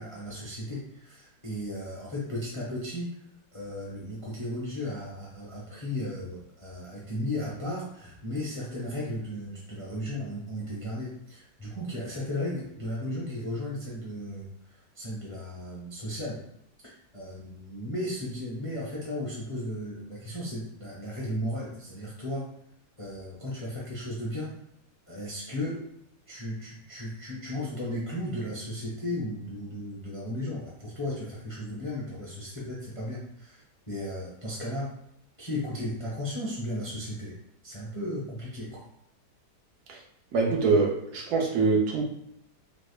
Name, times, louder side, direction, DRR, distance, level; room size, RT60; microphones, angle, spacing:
voice 1, 0.0-3.2 3.5-14.5 14.9-16.4 17.1-22.5 23.0-24.6 25.1-25.8 26.3-35.0 35.4-37.3 37.6-38.8, left 1 dB, 40° left, -6 dB, 0.5 m, -35 dB
voice 2, 40.3-42.0, right 4 dB, 70° right, 0 dB, 1.2 m, -24 dB
3.3 x 3.0 x 2.3 m, 0.76 s
omnidirectional pair, 1.7 m